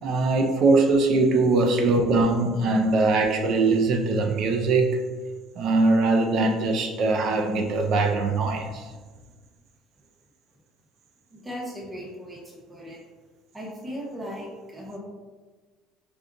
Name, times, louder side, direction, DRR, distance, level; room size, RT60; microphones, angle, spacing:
voice 1, 0.0-5.0 5.6-8.8, right 3 dB, 45° right, 4 dB, 0.5 m, -21 dB
voice 2, 11.3-13.0 13.5-15.0, equal, 10° right, -2 dB, 0.9 m, -37 dB
5.2 x 2.4 x 3.8 m, 1.4 s
cardioid pair, 165°, 0 cm